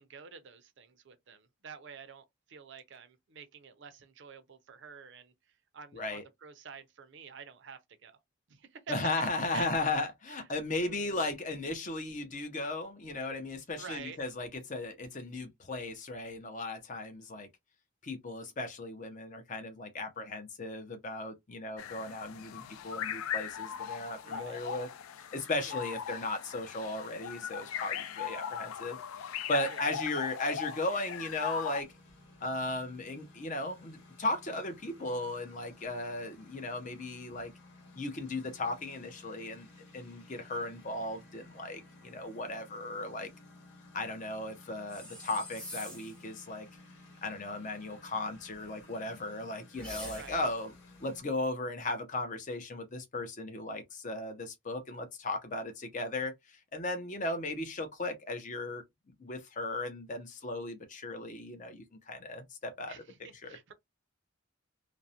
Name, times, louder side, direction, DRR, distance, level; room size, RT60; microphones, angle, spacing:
voice 1, 0.0-5.3 5.7-8.2 8.5-9.0 9.5-9.7 10.3-10.4 10.8-11.2 13.8-14.2 24.2-24.6 25.6-25.8 29.7-29.9 50.1-50.5 62.9-63.7, right 6 dB, 55° right, 0.5 m, -49 dB
voice 2, 5.9-6.2 8.9-17.5 18.0-24.9 25.1-31.9 32.4-37.5 37.9-39.7 39.9-43.3 43.9-46.7 47.2-50.7 51.0-58.8 59.2-62.9 63.4-63.6, left 2 dB, 35° left, 0.6 m, -36 dB
sound 1, 21.8-31.8, left 9 dB, 80° left, 0.4 m, -39 dB
Engine, 31.8-51.2, left 2 dB, 55° left, 1.0 m, -56 dB
sound 2, 44.9-46.2 49.7-50.6, left 1 dB, 5° left, 0.8 m, -45 dB
2.4 x 2.0 x 2.7 m
head